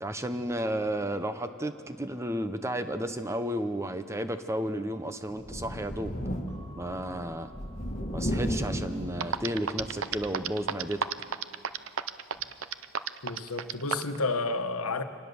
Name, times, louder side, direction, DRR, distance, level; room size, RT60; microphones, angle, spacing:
voice 1, 0.0-6.1 6.8-7.5 8.1-11.0, right 1 dB, 15° right, 9 dB, 0.7 m, -32 dB
Thunder, 5.4-10.5 10.9-11.0 12.4-12.5, equal, 35° left, 1.9 m, -35 dB
Keyboard (musical) / Bell, 6.5-8.9, right 1 dB, 15° left, 4.9 m, -56 dB
sound 1, 8.9-9.0 9.2-14.2, right 7 dB, 60° right, 0.6 m, -31 dB
voice 2, 13.2-15.0, left 3 dB, 80° left, 7 dB, 1.3 m, -31 dB
24.5 x 19.0 x 6.9 m, 2.2 s
head